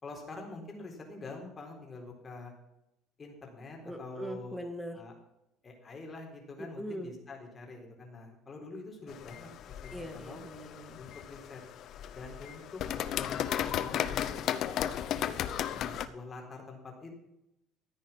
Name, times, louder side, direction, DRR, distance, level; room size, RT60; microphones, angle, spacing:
voice 1, 0.0-2.5 3.2-4.6 4.9-5.1 5.6-10.4 11.0-11.6 12.1-15.1 15.8-17.2, left 3 dB, 25° left, 1 dB, 4.2 m, -45 dB
voice 2, 3.8-5.0 6.6-7.1 9.9-11.0, equal, ahead, 6 dB, 2.1 m, -41 dB
sound 1, 9.1-16.1, left 10 dB, 55° left, 0.9 m, -35 dB
14.0 x 9.4 x 5.7 m, 0.87 s
cardioid pair, 115°, 0 cm